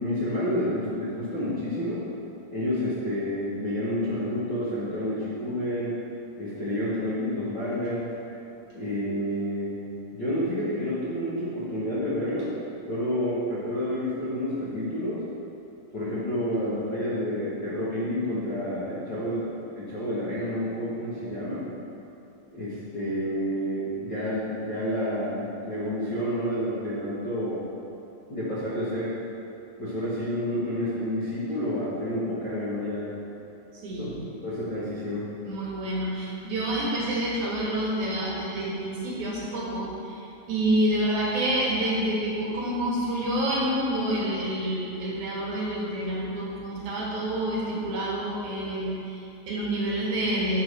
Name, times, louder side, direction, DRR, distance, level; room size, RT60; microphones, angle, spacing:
voice 1, 0.0-2.0 2.5-6.0 6.4-8.1 8.7-9.7 10.1-12.6 12.9-15.2 15.9-21.7 22.5-27.6 28.3-29.2 29.8-33.1 34.0-35.3, equal, 60° left, -10 dB, 1.1 m, -29 dB
voice 2, 33.7-34.2 35.4-50.6, right 1 dB, 65° right, -5 dB, 2.3 m, -28 dB
7.8 x 4.8 x 6.6 m, 2.9 s
omnidirectional pair, 4.4 m